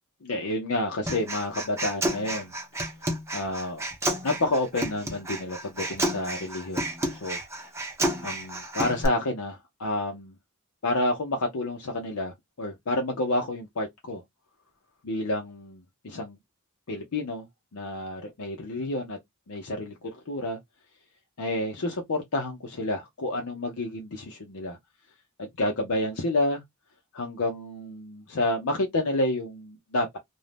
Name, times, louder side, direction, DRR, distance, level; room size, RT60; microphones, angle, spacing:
voice 1, 0.2-2.5 3.3-3.8 4.2-6.8 7.1-7.4 8.2-10.3 10.8-14.2 15.0-16.4 16.9-17.5 17.7-19.2 19.5-20.6 21.4-24.8 25.4-26.6 27.1-30.2, left 1 dB, 70° left, 0.6 m, -29 dB
Human voice, 1.1-9.0, right 1 dB, 10° right, 0.7 m, -31 dB
2.6 x 2.1 x 3.2 m
head